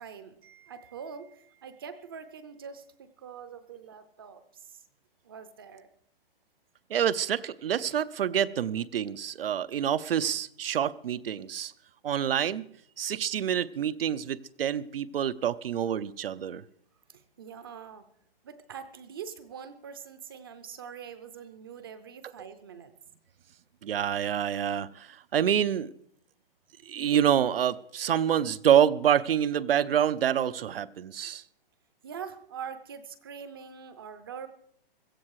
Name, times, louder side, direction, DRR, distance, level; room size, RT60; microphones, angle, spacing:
voice 1, 0.0-4.8 5.2-5.9 17.1-18.1 18.4-22.9 32.0-34.5, right 7 dB, 25° right, 11 dB, 0.6 m, -44 dB
voice 2, 6.9-11.7 12.0-16.6 23.8-25.9 26.8-31.4, right 9 dB, 75° right, 17 dB, 0.8 m, -27 dB
16.5 x 14.0 x 4.7 m, 0.68 s
hypercardioid pair, 170°, 29 cm